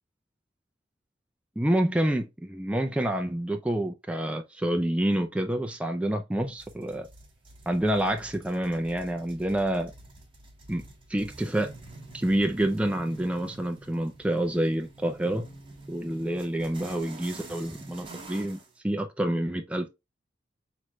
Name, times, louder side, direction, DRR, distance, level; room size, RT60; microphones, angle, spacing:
voice 1, 1.6-7.1 7.7-9.9 10.7-10.8 11.1-11.7 12.1-15.5 15.9-18.6 18.8-19.9, right 1 dB, 5° right, 0.4 m, -28 dB
sound 1, 6.6-18.7, right 2 dB, 30° right, 1.4 m, -47 dB
5.9 x 3.1 x 2.3 m
head